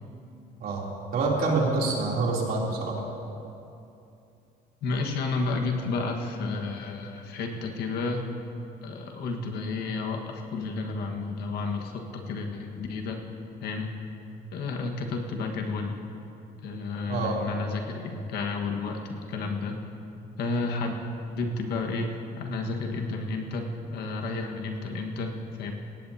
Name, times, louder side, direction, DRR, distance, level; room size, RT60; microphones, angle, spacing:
voice 1, 1.1-3.0 17.1-17.4, right 3 dB, 60° right, -3 dB, 3.3 m, -26 dB
voice 2, 4.8-8.3 8.8-13.2 13.6-13.9 14.5-16.0 16.6-19.8 20.4-21.0 21.4-25.7, left 3 dB, 70° left, 2 dB, 1.7 m, -31 dB
19.0 x 17.0 x 2.9 m, 2.7 s
cardioid pair, 110°, 17 cm